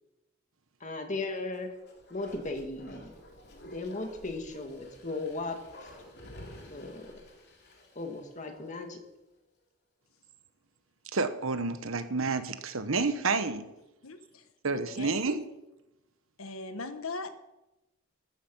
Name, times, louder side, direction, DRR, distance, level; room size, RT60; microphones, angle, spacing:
voice 1, 0.8-1.7 2.1-3.1 3.7-5.9 6.7-7.1 8.0-9.0, left 2 dB, 35° left, 4 dB, 2.0 m, -37 dB
Bark, 1.5-9.0 9.4-9.5, left 1 dB, 50° left, 3.0 m, -51 dB
voice 2, 11.1-13.7 14.6-15.4, right 4 dB, 75° right, 10 dB, 1.2 m, -29 dB
voice 3, 14.0-14.4 14.7-15.2 16.4-17.3, left 3 dB, 85° left, 9 dB, 1.5 m, -39 dB
14.5 x 13.0 x 5.5 m, 0.97 s
head